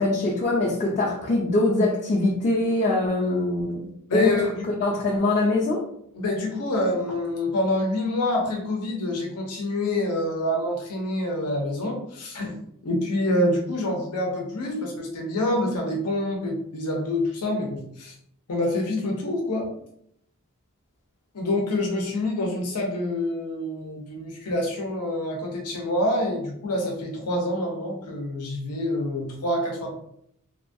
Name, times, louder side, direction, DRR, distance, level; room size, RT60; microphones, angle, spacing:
voice 1, 0.0-4.3 4.8-5.9, left 2 dB, 35° left, -4 dB, 0.4 m, -23 dB
voice 2, 4.1-4.7 6.1-12.6 12.8-18.2 18.5-19.7 21.3-29.9, left 1 dB, 90° left, 0 dB, 0.6 m, -26 dB
2.9 x 2.2 x 2.6 m, 0.70 s
head